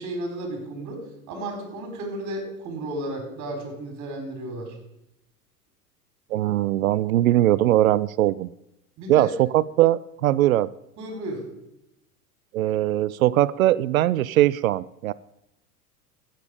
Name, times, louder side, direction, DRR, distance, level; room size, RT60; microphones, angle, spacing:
voice 1, 0.0-4.7 9.0-9.3 11.0-11.5, right 1 dB, 40° right, 3 dB, 4.4 m, -33 dB
voice 2, 6.3-8.5 9.1-10.7 12.5-15.1, right 14 dB, 65° right, 20 dB, 0.5 m, -21 dB
13.0 x 9.0 x 5.0 m, 0.85 s
figure-of-eight pair, 85°, 47 cm